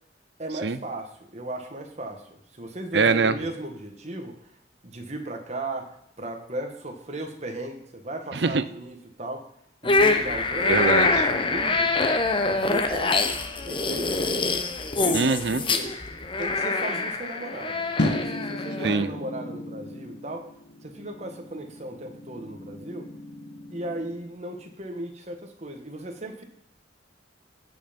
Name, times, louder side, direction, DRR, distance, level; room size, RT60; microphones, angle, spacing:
voice 1, 0.4-4.4 4.8-9.5 9.8-11.9 12.4-13.3 13.6-14.5 14.9-16.0 16.4-20.5 20.8-23.1 23.7-26.4, right 1 dB, 35° right, 4 dB, 1.7 m, -36 dB
voice 2, 2.9-3.3 8.4-8.6 10.7-11.1 15.1-15.6 18.8-19.1, right 4 dB, 65° right, 14 dB, 0.7 m, -22 dB
sound 1, 9.8-19.0, left 3 dB, 30° left, 0.9 m, -25 dB
sound 2, 18.0-24.2, left 1 dB, 65° left, 1.7 m, -34 dB
15.5 x 5.7 x 5.3 m, 0.71 s
head